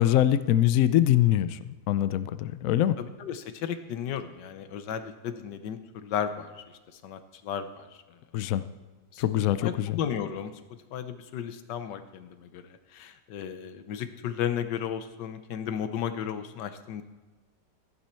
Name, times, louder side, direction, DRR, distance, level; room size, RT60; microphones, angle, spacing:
voice 1, 0.0-1.6 1.9-3.0 8.3-8.6 9.2-10.0, left 12 dB, 70° left, 14 dB, 0.8 m, -23 dB
voice 2, 3.0-6.5 7.0-7.9 9.1-9.2 9.6-10.5 10.9-12.6 12.9-17.0, left 8 dB, 85° left, 10 dB, 1.4 m, -34 dB
13.5 x 11.5 x 4.4 m, 1.2 s
omnidirectional pair, 1.8 m